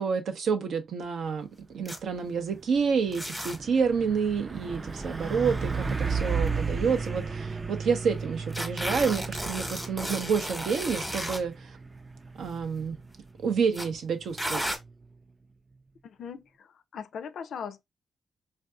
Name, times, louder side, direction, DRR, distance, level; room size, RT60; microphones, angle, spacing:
voice 1, 0.0-1.5 1.7-11.7 12.4-13.0 13.4-14.6, right 6 dB, 75° right, 0.6 m, -28 dB
sound 1, 1.9-2.0 3.1-3.6 4.7-5.7 6.5-6.6 6.9-7.0 8.5-11.4 12.4-12.6 13.7-13.9 14.4-14.8, equal, 5° right, 0.9 m, -34 dB
Truck, 2.0-2.3 2.6-15.2, right 4 dB, 35° right, 0.4 m, -35 dB
voice 2, 16.0-17.8, left 7 dB, 75° left, 0.3 m, -39 dB
3.4 x 2.6 x 2.2 m
supercardioid pair, 55°, 0 cm